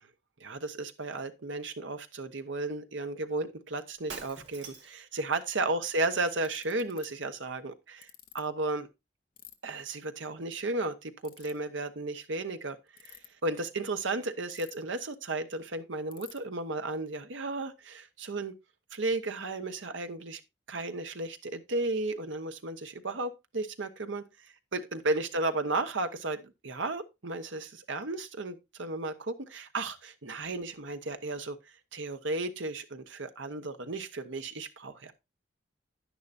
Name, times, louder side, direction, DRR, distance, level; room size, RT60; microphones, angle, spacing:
voice 1, 0.4-8.9 9.6-18.5 18.9-20.4 20.7-31.6 31.9-35.1, right 2 dB, 80° right, 1.1 m, -34 dB
Shatter, 4.0-5.1, right 5 dB, 60° right, 1.7 m, -44 dB
Ratchet pawl, 6.4-7.1 8.0-8.4 9.4-9.5 11.2-11.5 12.9-13.3 14.5-15.0 15.3-15.4 15.6-15.7 16.1-16.4, left 13 dB, 45° left, 1.1 m, -50 dB
10.5 x 10.0 x 2.6 m
head